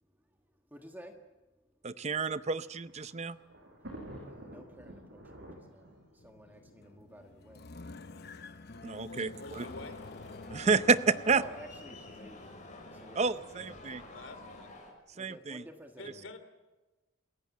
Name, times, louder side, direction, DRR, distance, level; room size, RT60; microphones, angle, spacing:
voice 1, 0.7-1.1 4.3-5.9 6.2-7.6 8.8-9.0 11.3-12.6 13.0-13.2 13.5-14.0 15.1-16.3, equal, 10° right, 3 dB, 1.5 m, -51 dB
voice 2, 1.8-3.4 8.8-9.7 10.5-11.4 13.2-14.0 15.2-15.6, right 4 dB, 35° right, 14 dB, 0.6 m, -29 dB
Thunder, 2.4-7.7 8.5-8.6 8.9-9.0 10.0-10.3, right 1 dB, 60° right, 6.2 m, -50 dB
sound 1, 6.2-14.7, left 3 dB, 55° left, 0.9 m, -50 dB
voice 3, 9.1-10.0 14.1-14.8 15.9-16.4, left 2 dB, 75° left, 9 dB, 2.9 m, -48 dB
sound 2, 9.5-14.9, left 2 dB, 40° left, 6.7 m, -50 dB
28.0 x 15.5 x 7.5 m, 1.1 s
head